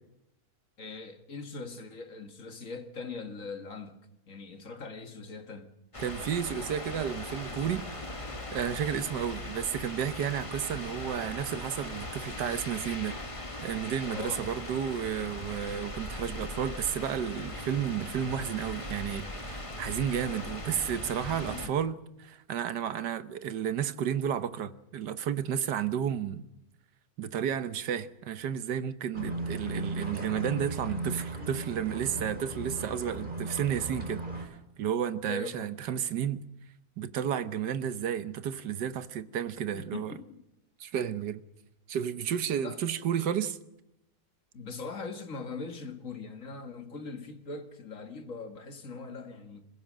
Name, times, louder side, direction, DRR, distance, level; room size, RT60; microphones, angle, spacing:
voice 1, 0.8-4.0 4.3-5.7 14.1-14.5 21.4-21.7 35.2-35.7 39.7-40.4 42.6-42.8 44.5-49.6, left 4 dB, 50° left, 2.2 m, -41 dB
sound 1, 5.9-21.7, left 1 dB, 20° left, 1.9 m, -39 dB
voice 2, 6.0-7.8 8.5-13.2 13.6-26.4 27.2-36.4 37.0-40.1 40.8-41.4 41.9-43.6, right 9 dB, 85° right, 1.6 m, -32 dB
sound 2, 29.1-34.5, right 2 dB, 30° right, 3.5 m, -36 dB
26.5 x 15.5 x 7.6 m
omnidirectional pair, 1.8 m